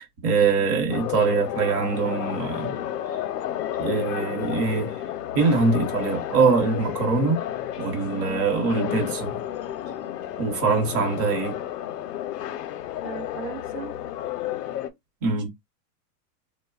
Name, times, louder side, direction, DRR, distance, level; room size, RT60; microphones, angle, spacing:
voice 1, 0.0-2.8 3.8-5.0 5.3-7.4 7.8-9.4 10.4-11.6 15.2-15.5, right 4 dB, 30° right, 0.9 m, -23 dB
sound 1, 0.9-14.9, left 11 dB, 75° left, 0.6 m, -31 dB
voice 2, 8.0-8.5 13.0-13.9, right 8 dB, 75° right, 0.6 m, -37 dB
3.1 x 2.1 x 2.3 m
supercardioid pair, 160°, 49 cm